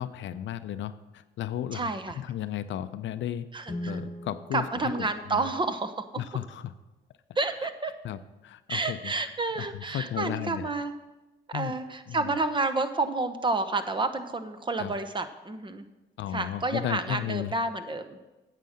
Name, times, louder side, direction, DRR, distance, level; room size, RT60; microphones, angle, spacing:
voice 1, 0.0-1.9 2.2-3.5 3.9-5.5 6.2-6.7 8.0-9.1 9.6-10.7 11.5-11.7 12.1-12.2 14.8-14.9 16.2-17.5, left 11 dB, 70° left, 12 dB, 0.6 m, -34 dB
voice 2, 1.7-2.2 3.5-4.0 4.5-6.1 7.3-7.9 8.7-10.9 11.5-15.8 16.3-18.2, right 3 dB, 25° right, 9 dB, 0.9 m, -30 dB
Guitar, 3.6-6.2, equal, 25° left, 1.2 m, -41 dB
9.3 x 7.5 x 6.5 m, 1.1 s
cardioid pair, 90°, 20 cm